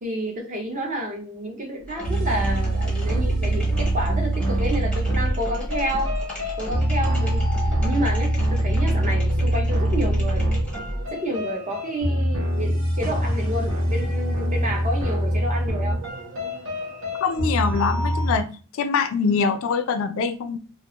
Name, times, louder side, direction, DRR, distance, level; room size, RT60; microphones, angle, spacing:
voice 1, 0.0-6.1 6.6-7.4 7.8-10.5 11.1-16.0, equal, 35° right, 2 dB, 0.6 m, -30 dB
sound 1, 1.8-11.1, equal, 5° left, 0.6 m, -31 dB
sound 2, 2.0-18.4, right 1 dB, 60° right, 0.8 m, -24 dB
voice 2, 17.2-18.5 18.7-20.6, left 5 dB, 60° left, 9 dB, 0.3 m, -23 dB
2.4 x 2.2 x 2.8 m, 0.38 s
head